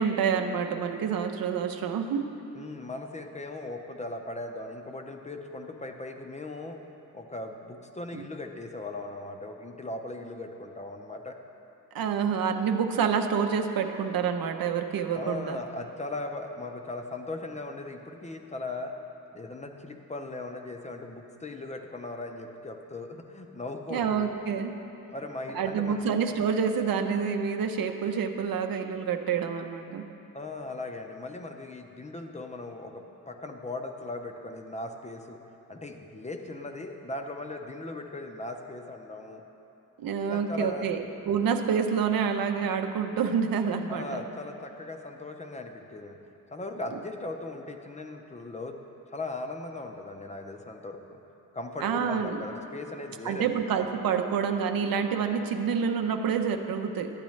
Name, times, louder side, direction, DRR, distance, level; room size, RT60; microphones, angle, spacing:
voice 1, 0.0-2.3 8.1-8.3 11.9-15.6 23.9-24.8 25.5-30.0 40.0-44.2 51.8-52.4 53.2-57.1, right 6 dB, 80° right, 6 dB, 0.6 m, -28 dB
voice 2, 2.5-6.8 7.1-11.4 15.1-18.9 19.3-24.3 25.1-26.0 30.3-35.4 35.7-39.4 40.2-40.9 43.9-46.2 46.5-48.8 49.1-51.2 51.5-53.6, left 2 dB, 20° left, 4 dB, 0.5 m, -38 dB
11.5 x 8.9 x 3.1 m, 3.0 s
wide cardioid pair, 125°, 34 cm